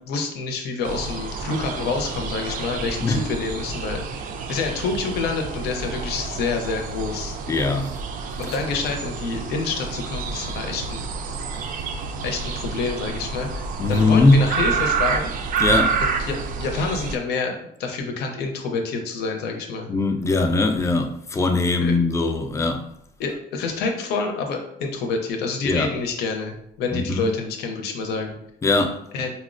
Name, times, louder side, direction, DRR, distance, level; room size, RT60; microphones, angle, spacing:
voice 1, 0.1-7.4 8.4-11.1 12.2-15.3 16.0-19.9 21.8-22.0 23.2-28.4 29.1-29.3, left 4 dB, 75° left, 0.6 m, -28 dB
sound 1, 0.8-17.2, right 5 dB, 55° right, 0.4 m, -29 dB
voice 2, 7.5-7.9 13.8-14.5 15.6-16.0 19.9-22.8 25.6-25.9 26.9-27.3 28.6-29.0, left 3 dB, 15° left, 0.3 m, -20 dB
4.1 x 2.0 x 2.5 m
cardioid pair, 110°, 17 cm